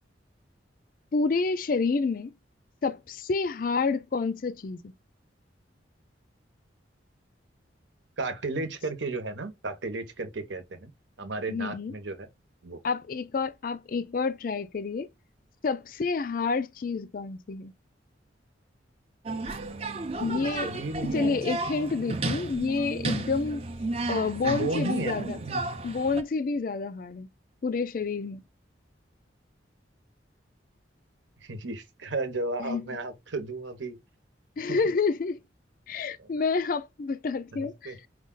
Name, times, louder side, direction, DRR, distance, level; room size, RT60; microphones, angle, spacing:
voice 1, 1.1-2.3 2.8-4.9 11.5-11.9 12.8-15.1 15.6-17.7 20.2-20.7 21.0-23.6 24.1-25.4 25.8-27.3 27.6-28.4 32.6-32.8 34.6-35.4 35.9-38.1, left 4 dB, 45° left, 0.4 m, -29 dB
voice 2, 8.2-10.9 11.2-12.3 12.6-12.8 20.2-21.5 24.4-25.6 31.4-34.0 34.7-34.8 36.2-36.3 37.6-38.0, right 3 dB, 75° right, 1.0 m, -34 dB
sound 1, 19.3-26.2, right 3 dB, 30° right, 0.6 m, -33 dB
5.0 x 2.4 x 3.8 m
head